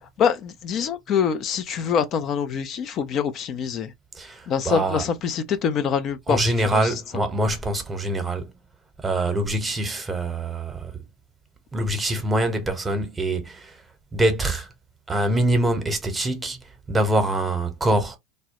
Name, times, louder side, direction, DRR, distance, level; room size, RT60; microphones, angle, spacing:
voice 1, 0.0-3.9 4.5-7.0, left 7 dB, 45° left, 0.4 m, -25 dB
voice 2, 4.1-5.0 6.3-8.5 9.0-10.9 11.7-13.8 14.1-14.7 15.1-18.2, right 1 dB, 20° right, 0.8 m, -24 dB
2.2 x 2.0 x 2.7 m
hypercardioid pair, 90°, 0 cm